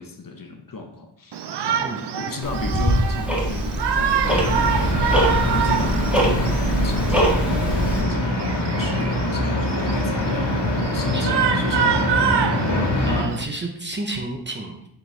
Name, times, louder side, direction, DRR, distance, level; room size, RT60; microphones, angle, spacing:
voice 1, 0.0-1.9 2.1-4.7 5.5-12.4, left 4 dB, 45° left, 3 dB, 0.9 m, -34 dB
Shout, 1.3-13.4, right 8 dB, 60° right, 0.5 m, -27 dB
Tick-tock, 2.4-8.0, right 1 dB, 5° right, 1.4 m, -23 dB
sound 1, 4.2-13.2, left 1 dB, 70° left, 1.7 m, -24 dB
voice 2, 13.0-14.9, right 2 dB, 25° right, 2 dB, 0.7 m, -30 dB
7.0 x 4.4 x 3.3 m, 0.74 s
wide cardioid pair, 120°, 47 cm